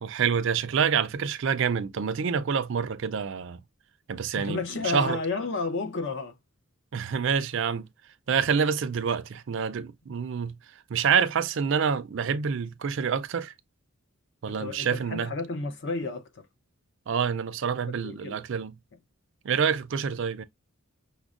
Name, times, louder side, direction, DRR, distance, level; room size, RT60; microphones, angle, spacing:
voice 1, 0.0-3.6 4.1-5.2 6.9-7.9 8.3-10.6 10.9-13.5 14.4-15.4 17.1-18.7 19.4-20.4, right 6 dB, 55° right, 0.4 m, -27 dB
voice 2, 4.4-6.4 14.5-16.5 18.0-18.4, left 3 dB, 55° left, 0.6 m, -32 dB
6.0 x 2.1 x 2.4 m
head